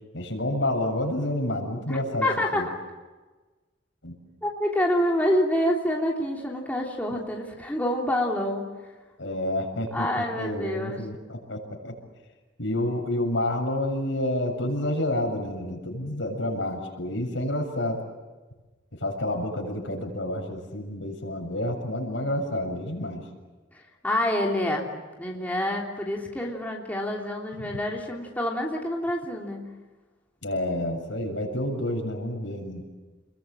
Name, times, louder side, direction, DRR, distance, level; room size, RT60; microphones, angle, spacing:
voice 1, 0.1-2.3 2.5-2.7 4.0-4.2 9.2-10.1 10.4-11.9 12.6-18.0 18.9-23.2 30.4-32.8, left 1 dB, 75° left, 2 dB, 7.3 m, -29 dB
voice 2, 1.9-2.6 4.4-8.6 9.9-11.0 23.7-24.9 25.2-29.6, left 1 dB, 10° left, -2 dB, 3.2 m, -27 dB
29.5 x 22.0 x 8.8 m, 1.3 s
head